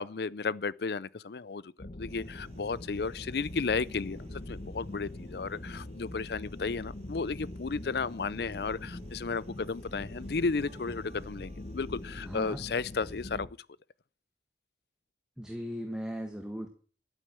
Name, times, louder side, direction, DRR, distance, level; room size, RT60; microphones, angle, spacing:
voice 1, 0.0-13.5, left 4 dB, 65° left, 0.5 m, -33 dB
sound 1, 1.8-13.5, left 1 dB, 45° left, 0.9 m, -43 dB
sound 2, 2.1-13.3, equal, 35° right, 1.6 m, -54 dB
voice 2, 12.2-12.6 15.4-16.7, equal, 5° right, 1.4 m, -37 dB
11.5 x 9.1 x 7.6 m
head